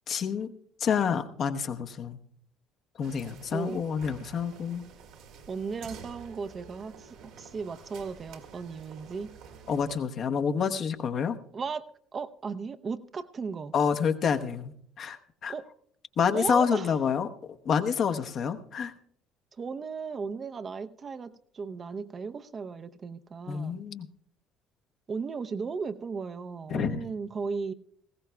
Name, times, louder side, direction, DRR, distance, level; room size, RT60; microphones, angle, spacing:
voice 1, 0.1-0.5 0.8-2.2 3.0-4.8 9.7-11.4 13.7-15.5 16.2-17.3 17.6-18.9 23.5-24.1 26.7-27.0, left 7 dB, 50° left, 1.0 m, -28 dB
sound 1, 3.0-10.0, right 6 dB, 65° right, 1.8 m, -49 dB
voice 2, 3.5-3.8 5.5-9.3 11.5-13.7 15.5-15.7 16.3-17.0 19.5-23.8 25.1-27.7, right 5 dB, 40° right, 0.7 m, -36 dB
19.5 x 16.0 x 2.3 m
hypercardioid pair, 55°, 0 cm